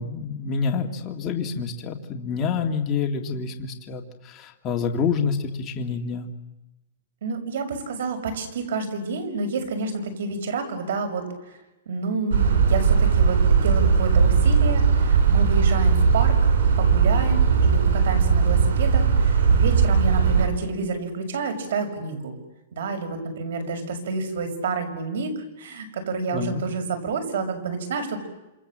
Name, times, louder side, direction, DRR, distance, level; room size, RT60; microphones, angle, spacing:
voice 1, 0.0-6.3 26.3-26.6, left 5 dB, 20° left, 2 dB, 2.2 m, -27 dB
voice 2, 7.2-11.6 11.9-16.3 16.8-22.4 22.7-28.2, right 4 dB, 70° right, 7 dB, 6.4 m, -29 dB
sound 1, 12.3-20.5, right 6 dB, 90° right, 6.4 m, -18 dB
28.0 x 27.5 x 7.6 m, 0.99 s
supercardioid pair, 170°, 0 cm